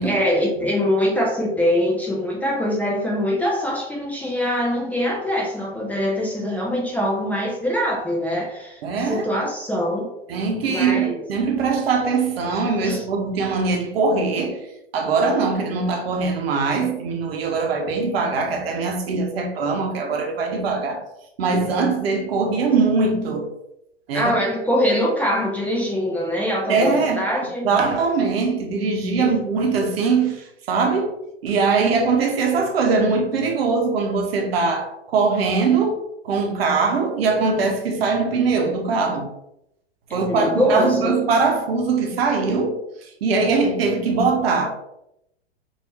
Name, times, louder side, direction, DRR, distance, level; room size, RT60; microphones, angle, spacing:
voice 1, 0.0-10.1 10.7-11.1 12.8-13.0 24.1-27.7 29.2-29.3 40.1-41.2, equal, 5° left, 0.5 m, -23 dB
voice 2, 8.8-9.2 10.3-14.6 14.9-21.0 21.4-23.5 24.1-24.3 26.7-27.2 27.6-31.1 31.4-36.0 36.2-39.3 40.1-42.8 43.2-44.7, right 4 dB, 65° right, 0.9 m, -21 dB
3.4 x 2.7 x 2.9 m
hypercardioid pair, 110°, 33 cm